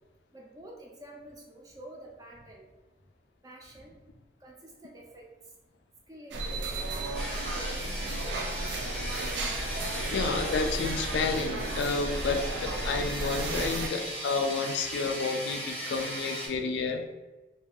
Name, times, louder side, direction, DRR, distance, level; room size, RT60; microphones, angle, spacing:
voice 1, 0.3-2.7 3.4-4.0 4.4-5.3 6.1-8.6 9.1-9.2, right 1 dB, 20° right, -1 dB, 0.3 m, -49 dB
sound 1, 6.3-13.9, right 2 dB, 90° right, 0.4 m, -34 dB
sound 2, 7.1-16.5, equal, 5° left, 0.7 m, -37 dB
voice 2, 10.1-17.1, left 4 dB, 80° left, 5 dB, 0.3 m, -30 dB
2.4 x 2.2 x 3.4 m, 1.2 s
head